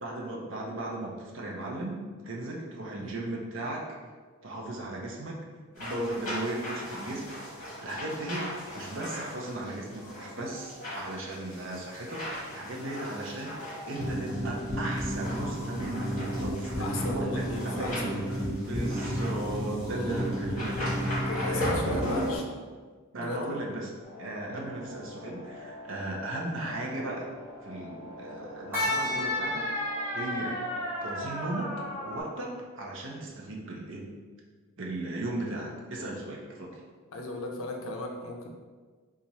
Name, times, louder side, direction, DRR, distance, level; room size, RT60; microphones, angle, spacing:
voice 1, 0.0-2.0 2.2-3.9 4.4-5.4 5.8-7.5 7.8-18.1 18.6-21.0 21.5-21.7 22.0-22.3 23.1-23.9 24.2-27.3 27.6-29.7 30.1-30.5 31.0-31.7 32.0-34.0 34.8-36.8, right 2 dB, 55° right, -2 dB, 0.6 m, -36 dB
sound 1, 5.8-22.4, equal, 35° left, 1.2 m, -38 dB
sound 2, 14.0-21.9, equal, 30° right, 1.1 m, -33 dB
voice 2, 16.8-18.4 19.9-20.1 21.3-22.4 23.2-23.5 24.5-24.6 37.1-38.5, left 2 dB, 65° left, 1 dB, 0.5 m, -37 dB
sound 3, 24.0-32.2, left 1 dB, 10° right, 0.9 m, -35 dB
2.9 x 2.5 x 4.1 m, 1.5 s
head